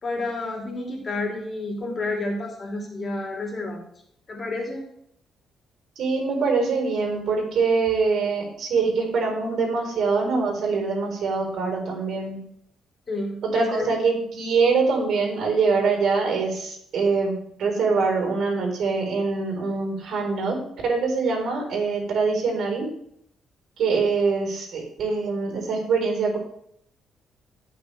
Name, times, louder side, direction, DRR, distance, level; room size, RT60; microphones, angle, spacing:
voice 1, 0.0-3.9 4.3-4.8 13.1-13.9, left 2 dB, 35° left, 0 dB, 3.3 m, -30 dB
voice 2, 6.0-12.4 13.4-20.6 20.8-22.9 23.8-26.4, right 4 dB, 70° right, 1 dB, 4.3 m, -24 dB
16.0 x 6.6 x 3.4 m, 0.70 s
cardioid pair, 90°, 0 cm